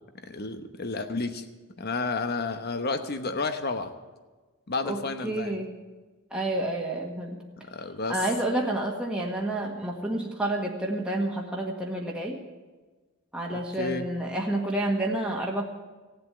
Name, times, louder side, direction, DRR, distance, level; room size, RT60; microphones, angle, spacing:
voice 1, 0.2-1.5 1.8-3.9 4.7-5.6 7.6-8.2 13.5-14.1, left 3 dB, 45° left, 9 dB, 1.0 m, -31 dB
voice 2, 4.8-5.7 6.3-7.4 8.1-12.4 13.3-15.6, right 1 dB, 5° right, -2 dB, 1.6 m, -29 dB
16.5 x 8.0 x 9.1 m, 1.3 s
head